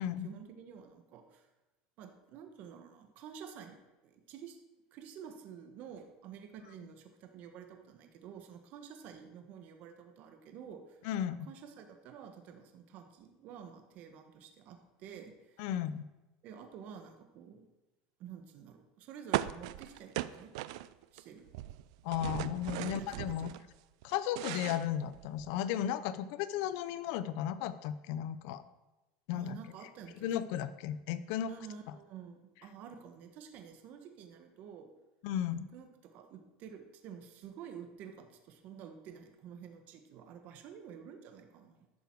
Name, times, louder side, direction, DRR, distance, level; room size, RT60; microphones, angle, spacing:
voice 1, 0.0-1.5 2.0-3.8 4.0-4.6 4.9-11.0 11.4-15.7 16.4-17.7 18.2-20.5 21.1-21.5 22.6-23.1 23.4-23.6 29.3-30.6 31.5-34.9 35.7-41.9, right 8 dB, 55° right, 5 dB, 1.3 m, -50 dB
voice 2, 11.0-11.5 15.6-16.0 22.0-23.5 24.0-28.6 29.3-29.6 30.2-31.5 35.2-35.7, left 10 dB, 70° left, 14 dB, 0.7 m, -35 dB
sound 1, 19.3-21.2 21.5-23.6 24.0-25.6, right 16 dB, 80° right, 0.4 m, -38 dB
11.5 x 6.9 x 4.7 m, 1.0 s
supercardioid pair, 110°, 3 cm